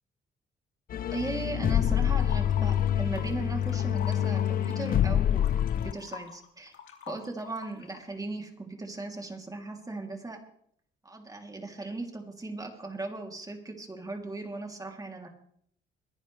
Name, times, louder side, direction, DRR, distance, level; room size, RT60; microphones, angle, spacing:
sound 1, 0.9-5.9, left 10 dB, 45° left, 0.4 m, -26 dB
voice 1, 1.1-5.4 5.8-6.7 7.1-10.4 11.0-15.3, right 2 dB, 20° right, 3 dB, 3.0 m, -37 dB
sound 2, 1.8-3.3 3.6-8.0, left 8 dB, 80° left, 2.6 m, -45 dB
22.0 x 11.0 x 3.3 m, 0.66 s
cardioid pair, 90°, 20 cm